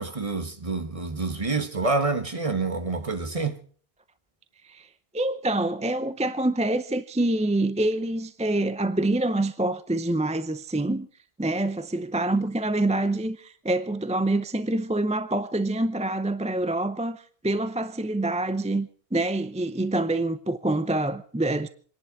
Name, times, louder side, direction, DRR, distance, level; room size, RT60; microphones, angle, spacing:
voice 1, 0.0-3.6, right 3 dB, 35° right, 1.5 m, -27 dB
voice 2, 5.1-11.1 11.4-21.7, right 2 dB, 10° right, 0.5 m, -26 dB
27.0 x 11.0 x 4.7 m
omnidirectional pair, 1.0 m